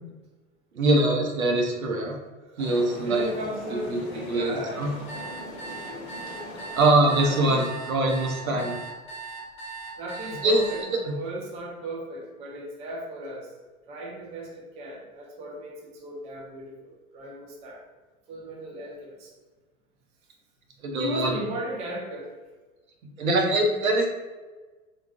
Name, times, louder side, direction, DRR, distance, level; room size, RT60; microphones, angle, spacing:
voice 1, 0.7-2.2 2.6-3.3 3.7-4.0 4.3-4.9 6.7-8.8 10.4-10.7 11.1-11.2 20.8-21.3 23.2-24.1, right 2 dB, 75° right, 1 dB, 0.8 m, -23 dB
sound 1, 2.6-7.6, left 2 dB, 50° left, 0.8 m, -41 dB
voice 2, 3.0-4.9 6.5-6.6 7.2-7.5 8.5-8.6 10.0-13.5 13.9-17.8 18.3-19.3 21.0-22.3, right 1 dB, 15° right, -2 dB, 0.4 m, -36 dB
sound 2, 5.1-10.8, right 4 dB, 15° left, 0.8 m, -39 dB
3.9 x 2.3 x 2.3 m, 1.3 s
figure-of-eight pair, 90°, 43 cm